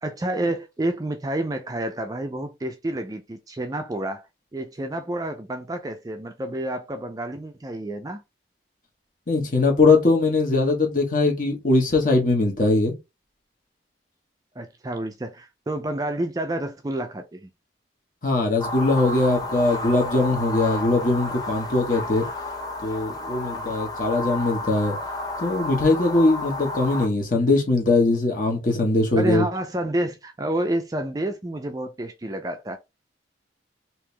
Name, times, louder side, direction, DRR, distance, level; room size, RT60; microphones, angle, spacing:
voice 1, 0.0-4.3 4.5-8.2 14.6-17.5 23.5-23.7 29.1-32.8, right 1 dB, 20° right, 0.4 m, -29 dB
voice 2, 9.3-12.9 18.2-22.2 22.8-25.0 25.4-29.4, left 2 dB, 45° left, 1.4 m, -21 dB
sound 1, 18.6-27.1, left 2 dB, 20° left, 0.8 m, -31 dB
3.4 x 2.9 x 3.3 m
head